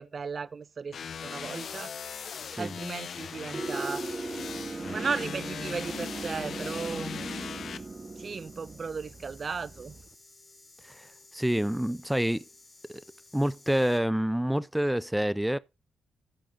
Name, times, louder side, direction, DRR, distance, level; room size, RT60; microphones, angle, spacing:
voice 1, 0.0-1.9 2.6-4.0 4.9-7.1 8.2-9.9, right 5 dB, 50° right, 0.4 m, -35 dB
sound 1, 0.9-7.8, left 7 dB, 65° left, 0.7 m, -39 dB
sound 2, 1.9-14.0, left 2 dB, 20° left, 4.3 m, -55 dB
sound 3, 3.5-10.1, right 3 dB, 35° right, 1.1 m, -38 dB
voice 2, 10.8-12.4 12.9-13.0 13.3-15.6, equal, 5° right, 0.5 m, -28 dB
15.0 x 5.3 x 3.8 m
cardioid pair, 70°, 0 cm